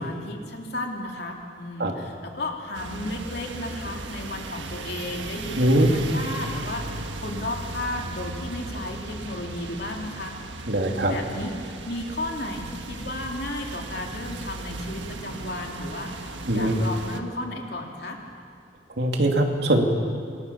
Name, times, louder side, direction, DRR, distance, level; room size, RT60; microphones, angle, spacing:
voice 1, 0.0-10.3 10.8-18.2, left 1 dB, 60° left, 1 dB, 3.1 m, -34 dB
sound 1, 2.7-17.2, right 2 dB, 85° right, 1.6 m, -36 dB
voice 2, 5.6-5.9 10.7-11.1 16.5-16.8 19.0-19.8, right 1 dB, 65° right, 2 dB, 2.9 m, -21 dB
27.5 x 21.5 x 7.1 m, 2.3 s
head